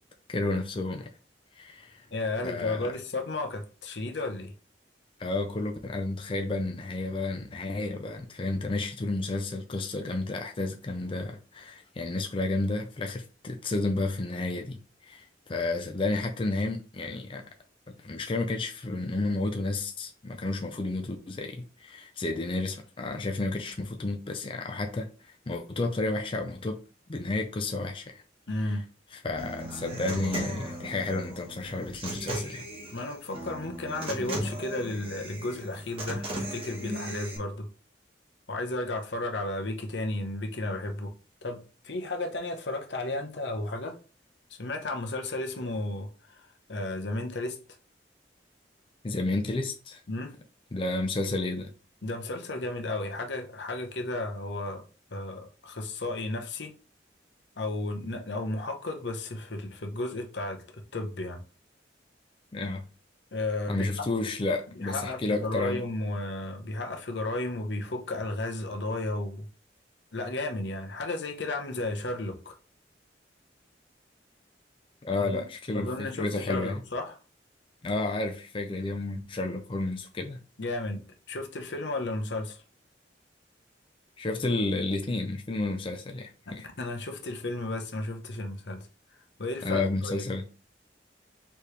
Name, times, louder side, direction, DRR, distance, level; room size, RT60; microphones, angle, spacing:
voice 1, 0.3-1.1 1.6-2.1 2.4-2.9 5.2-14.8 15.0-17.4 17.9-25.1 25.5-26.8 27.1-28.2 28.6-28.7 29.2-32.7 49.0-50.0 50.7-51.7 62.5-62.8 63.7-65.8 75.0-76.8 77.8-80.4 84.2-86.7 89.6-90.4, left 2 dB, 30° left, 0.5 m, -31 dB
voice 2, 2.1-4.5 28.5-28.8 32.9-37.7 38.5-41.1 41.4-41.6 41.8-44.0 44.5-47.6 50.1-50.3 52.0-54.8 55.1-56.7 57.6-61.4 63.3-64.1 64.8-69.5 70.1-72.6 75.2-75.4 75.7-77.2 80.6-81.0 81.3-82.6 86.5-88.9 89.4-90.2, left 2 dB, 80° left, 0.9 m, -33 dB
Human voice / Acoustic guitar, 29.4-37.4, right 1 dB, 30° right, 1.7 m, -37 dB
4.7 x 3.3 x 3.3 m
head